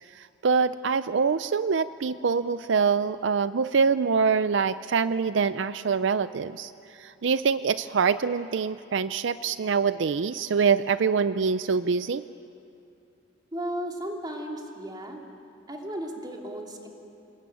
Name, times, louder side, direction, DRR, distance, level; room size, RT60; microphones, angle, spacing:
voice 1, 0.2-6.7 7.0-12.2, right 5 dB, 75° right, 13 dB, 0.5 m, -25 dB
voice 2, 13.5-15.2 15.7-16.9, right 1 dB, 20° right, 1 dB, 2.8 m, -35 dB
27.5 x 19.5 x 9.1 m, 2.6 s
head